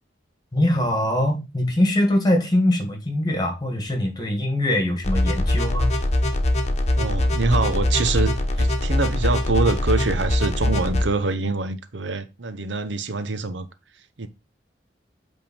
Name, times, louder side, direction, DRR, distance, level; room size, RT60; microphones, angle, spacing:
voice 1, 0.5-6.0, left 1 dB, 25° left, 2.0 m, -22 dB
sound 1, 5.0-11.0, left 1 dB, 40° left, 1.1 m, -22 dB
voice 2, 6.9-13.7 14.2-14.3, right 3 dB, 90° right, 0.8 m, -25 dB
8.5 x 3.7 x 4.4 m
head